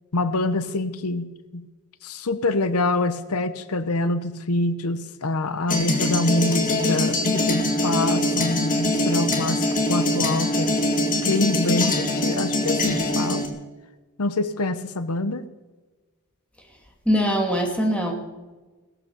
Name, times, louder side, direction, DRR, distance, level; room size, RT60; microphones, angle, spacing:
voice 1, 0.1-1.3 1.5-1.6 2.0-10.7 11.3-13.5 14.2-15.4, left 2 dB, 85° left, 12 dB, 0.9 m, -25 dB
sound 1, 5.7-13.5, left 1 dB, 35° left, 2.3 m, -23 dB
voice 2, 17.1-18.1, equal, 5° left, 1 dB, 2.4 m, -22 dB
18.0 x 11.0 x 7.1 m, 1.2 s
head